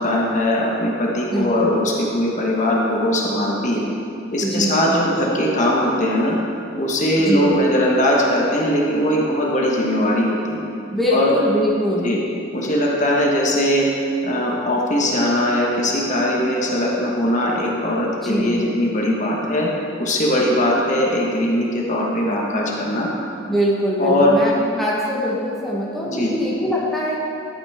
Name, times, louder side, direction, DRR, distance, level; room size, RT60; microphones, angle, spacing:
voice 1, 0.0-3.9 4.3-6.4 6.8-10.6 11.1-11.3 11.9-12.2 12.5-13.9 14.2-19.7 20.0-23.1 24.0-24.3 26.0-26.3, left 1 dB, 35° left, -3 dB, 1.3 m, -20 dB
voice 2, 1.3-1.7 4.4-5.0 7.2-7.5 10.9-12.1 18.2-18.6 23.5-27.2, equal, ahead, -6 dB, 1.2 m, -23 dB
11.5 x 9.0 x 3.6 m, 2.6 s
head